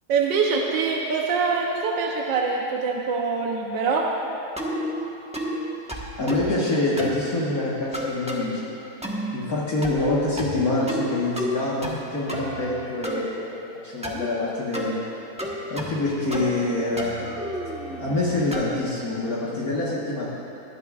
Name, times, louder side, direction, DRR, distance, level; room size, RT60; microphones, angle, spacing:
voice 1, 0.1-4.1, right 4 dB, 80° right, 0 dB, 1.5 m, -24 dB
sound 1, 4.6-4.9 5.3-5.6 5.9-6.5 7.0-7.2 7.9-8.4 9.0-9.3 9.8-10.1 10.4-11.1 11.4-12.0 12.3-13.2 14.0-14.3 14.7-14.9 15.4-16.0 16.3-16.7 17.0-18.8, equal, 5° right, 0.8 m, -31 dB
voice 2, 6.2-8.7 9.3-15.0 15.7-17.3 18.0-20.3, left 2 dB, 55° left, -7 dB, 1.8 m, -26 dB
20.0 x 12.5 x 2.4 m, 2.9 s
omnidirectional pair, 1.9 m